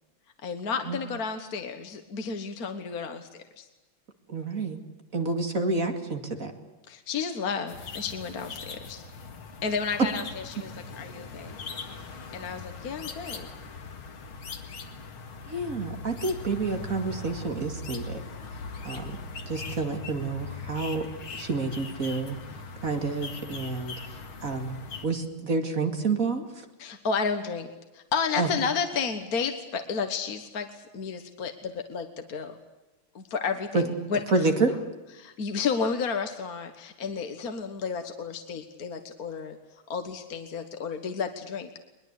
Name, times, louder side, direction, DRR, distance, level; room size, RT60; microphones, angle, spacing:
voice 1, 0.4-3.7 6.9-9.0 9.6-10.7 11.0-11.6 12.3-13.5 26.8-32.5 33.2-34.2 34.6-34.7 35.2-39.6 39.9-41.8, left 5 dB, 45° left, 7 dB, 1.7 m, -32 dB
voice 2, 4.3-4.8 5.1-6.5 15.5-18.2 18.8-19.1 19.4-21.1 21.3-22.4 22.8-24.8 25.0-26.6 28.4-28.5 33.7-33.8 34.3-34.7, right 3 dB, 40° right, 5 dB, 2.5 m, -29 dB
sound 1, 7.7-25.1, left 4 dB, 70° left, 2.8 m, -40 dB
22.0 x 21.5 x 8.3 m, 1.1 s
omnidirectional pair, 2.4 m